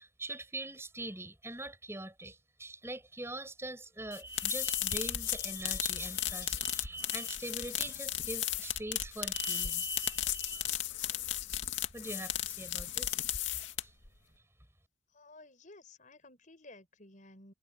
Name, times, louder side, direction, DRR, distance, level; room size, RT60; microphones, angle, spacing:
voice 1, 0.0-10.7 11.9-13.2 13.8-13.9, right 2 dB, 15° right, 5.8 m, -42 dB
sound 1, 4.1-14.1, left 12 dB, 85° left, 2.4 m, -35 dB
voice 2, 15.1-17.5, left 2 dB, 45° left, 5.9 m, -55 dB
head